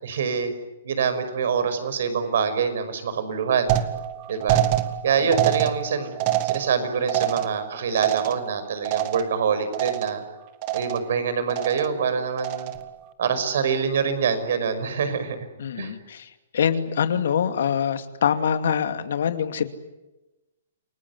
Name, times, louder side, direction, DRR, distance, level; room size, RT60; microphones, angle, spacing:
voice 1, 0.0-0.5 0.8-3.8 4.3-4.6 5.0-6.1 6.4-10.2 10.7-12.7 13.2-15.4 15.8-15.9, right 6 dB, 65° right, 10 dB, 5.7 m, -25 dB
sound 1, 3.7-9.5 9.7-10.3 10.6-11.2 11.5-12.0 12.4-12.9, right 13 dB, 35° right, 1.8 m, -26 dB
voice 2, 15.6-19.7, left 8 dB, 70° left, 9 dB, 2.5 m, -24 dB
29.0 x 20.0 x 9.6 m, 1.0 s
hypercardioid pair, 155°, 0 cm